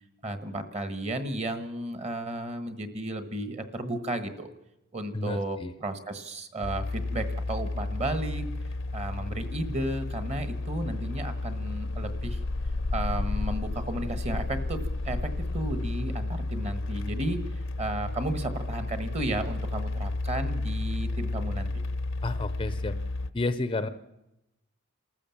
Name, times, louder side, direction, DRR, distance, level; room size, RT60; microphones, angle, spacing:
voice 1, 0.2-4.5 4.9-8.4 8.9-12.4 12.9-17.4 17.8-21.7, right 1 dB, 30° right, 9 dB, 1.4 m, -33 dB
voice 2, 5.1-5.7 22.2-23.0 23.3-23.9, left 2 dB, 25° left, 11 dB, 0.6 m, -31 dB
sound 1, 6.6-23.3, left 2 dB, 60° left, 0.7 m, -32 dB
27.5 x 14.0 x 7.2 m, 0.93 s
head